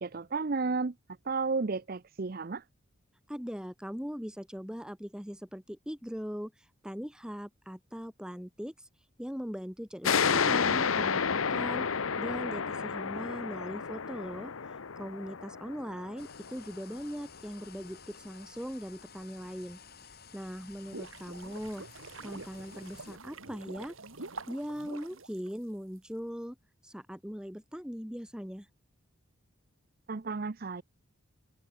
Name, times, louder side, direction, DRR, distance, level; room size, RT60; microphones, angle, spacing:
voice 1, 0.0-0.9 1.3-2.6 30.1-30.8, right 4 dB, 45° right, 0.6 m, -32 dB
voice 2, 3.3-6.5 6.8-8.9 9.2-11.9 12.2-14.5 15.0-19.8 20.3-21.9 22.2-23.9 24.5-26.6 26.8-28.7, equal, 5° right, 2.1 m, -40 dB
sound 1, 10.0-17.2, left 6 dB, 90° left, 0.9 m, -31 dB
sound 2, 16.2-23.2, left 6 dB, 50° left, 5.7 m, -53 dB
sound 3, 20.6-26.0, right 3 dB, 80° right, 2.8 m, -46 dB
head